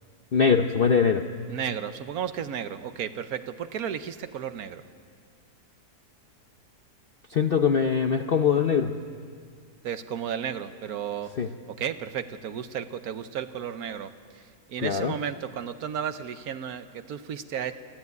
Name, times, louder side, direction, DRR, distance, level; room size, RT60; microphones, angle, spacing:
voice 1, 0.3-1.2 7.3-8.9 11.4-11.5 14.8-15.1, left 6 dB, 55° left, 6 dB, 0.6 m, -22 dB
voice 2, 1.5-4.8 9.8-11.3 11.7-17.7, right 8 dB, 65° right, 11 dB, 1.2 m, -33 dB
27.5 x 12.0 x 9.4 m, 2.1 s
omnidirectional pair, 1.8 m